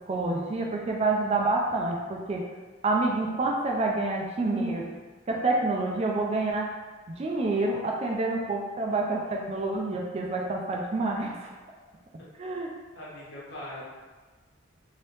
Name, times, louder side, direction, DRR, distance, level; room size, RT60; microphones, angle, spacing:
voice 1, 0.1-2.4 2.8-4.9 5.3-6.7 7.2-11.5 12.4-12.7, right 2 dB, 30° right, 0 dB, 0.3 m, -28 dB
voice 2, 12.9-13.8, left 1 dB, 55° left, -7 dB, 1.0 m, -40 dB
3.0 x 2.8 x 3.2 m, 1.3 s
head